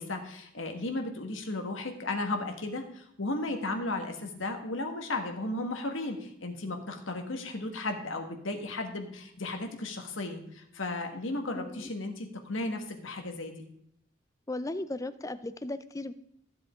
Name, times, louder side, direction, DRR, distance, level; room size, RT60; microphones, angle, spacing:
voice 1, 0.0-13.6, left 2 dB, 90° left, 4 dB, 1.7 m, -35 dB
voice 2, 11.6-11.9 14.5-16.1, left 2 dB, 15° left, 14 dB, 0.5 m, -36 dB
14.5 x 7.8 x 3.7 m, 0.75 s
head